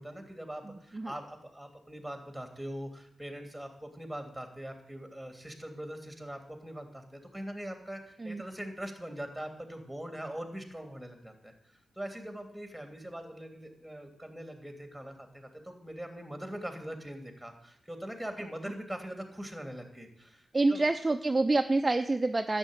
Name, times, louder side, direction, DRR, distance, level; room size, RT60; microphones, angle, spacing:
voice 1, 0.0-20.8, right 1 dB, ahead, 5 dB, 2.9 m, -42 dB
voice 2, 0.7-1.1 8.2-8.4 20.5-22.6, right 2 dB, 25° right, 7 dB, 0.7 m, -27 dB
11.5 x 7.4 x 9.6 m, 0.71 s
cardioid pair, 75°, 0 cm